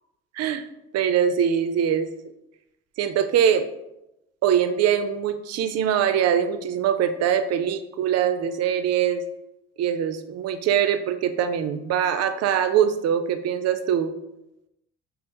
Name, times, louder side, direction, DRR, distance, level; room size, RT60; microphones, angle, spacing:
voice 1, 0.9-2.1 3.0-3.7 4.4-9.2 9.8-14.1, right 8 dB, 55° right, 10 dB, 0.5 m, -23 dB
5.1 x 2.0 x 2.9 m, 0.88 s
supercardioid pair, 75°, 31 cm